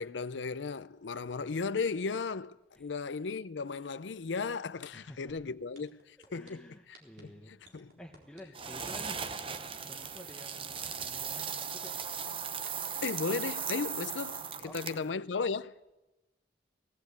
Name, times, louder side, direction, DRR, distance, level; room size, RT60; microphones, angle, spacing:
voice 1, 0.0-6.6 6.9-7.3 7.7-7.9 13.0-15.7, left 4 dB, 90° left, 0.6 m, -35 dB
voice 2, 4.9-5.4 6.2-12.3 14.6-15.1, equal, 5° left, 1.1 m, -52 dB
sound 1, 5.3-5.4 5.7-6.5 6.9-7.2 7.6-8.4 8.8-9.1 9.6-10.3 10.7-11.0 11.5-12.2 12.7-12.8, right 3 dB, 60° right, 4.1 m, -55 dB
sound 2, 8.5-15.1, right 6 dB, 30° right, 0.7 m, -38 dB
18.5 x 17.0 x 8.3 m
head